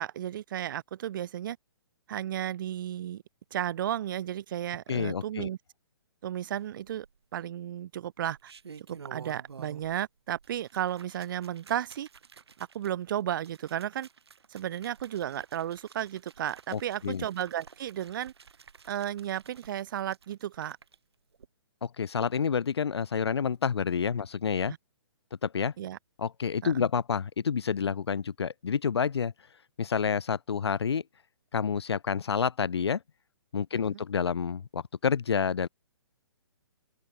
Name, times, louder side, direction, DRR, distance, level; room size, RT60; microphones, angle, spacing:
voice 1, 0.0-1.6 2.1-3.2 3.5-5.6 6.2-7.1 7.3-8.5 8.8-12.1 12.7-14.1 14.5-18.3 18.9-20.8 25.8-26.0 26.6-26.9 33.9-34.0, right 11 dB, 50° right, 0.8 m, -33 dB
voice 2, 4.9-5.5 16.7-17.2 21.8-24.7 25.4-25.7 26.2-29.3 29.8-31.0 31.5-33.0 33.5-35.7, left 6 dB, 75° left, 0.7 m, -29 dB
sound 1, 6.7-7.4 8.2-10.0 10.3-21.0 21.3-21.5, right 6 dB, 70° right, 5.4 m, -52 dB
open air
figure-of-eight pair, 130°, 14 cm